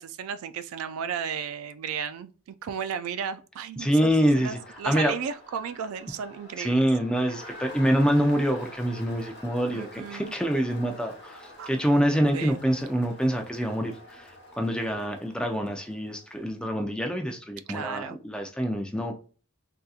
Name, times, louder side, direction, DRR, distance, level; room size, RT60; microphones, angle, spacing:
voice 1, 0.0-2.3 2.6-6.9 9.7-10.3 11.6-11.7 12.3-12.6 17.7-18.2, right 7 dB, 80° right, 0.3 m, -34 dB
voice 2, 3.8-4.6 4.9-5.1 6.6-19.1, equal, 5° left, 0.4 m, -26 dB
Crowd, 4.0-16.5, left 1 dB, 50° left, 1.2 m, -47 dB
3.7 x 2.7 x 2.4 m
head